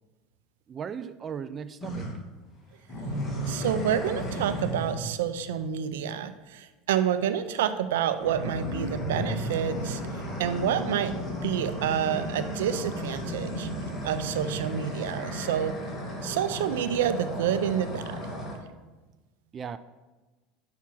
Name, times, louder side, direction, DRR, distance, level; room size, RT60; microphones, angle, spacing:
voice 1, 0.7-2.1 19.5-19.8, right 7 dB, 35° right, 12 dB, 0.4 m, -37 dB
sound 1, 1.8-2.1 2.9-5.1 8.1-18.6, equal, 25° left, 2.1 m, -34 dB
voice 2, 3.5-10.0 10.4-13.7 14.0-15.7 16.2-18.2, right 9 dB, 90° right, 11 dB, 0.5 m, -28 dB
5.8 x 5.7 x 6.2 m, 1.2 s
supercardioid pair, 105°, 0 cm